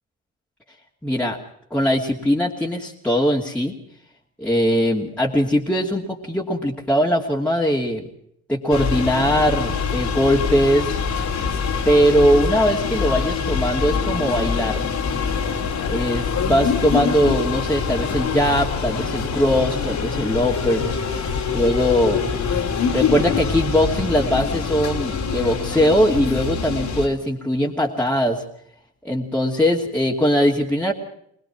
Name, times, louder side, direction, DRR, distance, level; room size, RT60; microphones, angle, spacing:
voice 1, 1.0-1.4 1.7-3.7 4.4-8.0 8.5-11.0 11.9-14.9 15.9-20.8 21.5-22.2 22.9-28.4 29.0-30.9, equal, 5° left, -4 dB, 2.7 m, -20 dB
sound 1, 8.7-27.1, left 6 dB, 70° left, 3.2 m, -24 dB
21.5 x 20.5 x 6.1 m, 0.71 s
cardioid pair, 90°, 30 cm